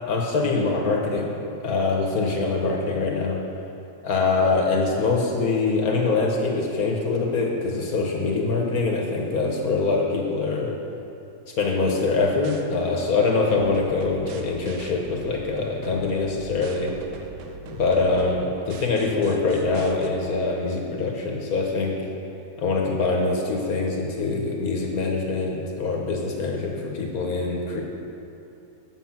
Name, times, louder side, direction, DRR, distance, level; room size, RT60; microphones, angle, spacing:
voice 1, 0.1-1.3 1.6-3.4 4.0-10.7 11.6-16.9 17.7-21.9 22.6-27.8, left 3 dB, 65° left, 0 dB, 1.4 m, -24 dB
sound 1, 12.4-12.6 13.5-20.1, right 5 dB, 70° right, 1.1 m, -42 dB
7.8 x 7.6 x 5.8 m, 2.7 s
omnidirectional pair, 1.7 m